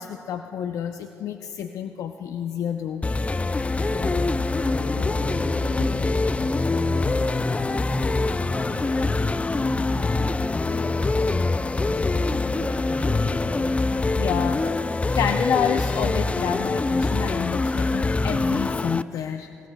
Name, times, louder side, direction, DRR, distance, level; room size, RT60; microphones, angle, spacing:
voice 1, 0.0-3.1 14.2-19.5, left 8 dB, 75° left, 7 dB, 0.5 m, -29 dB
sound 1, 3.0-19.0, left 3 dB, 20° left, 0.4 m, -24 dB
voice 2, 3.8-11.1 11.8-13.7, left 1 dB, 45° left, 3 dB, 2.4 m, -34 dB
22.0 x 19.5 x 2.2 m, 2.6 s
supercardioid pair, 60°, 6 cm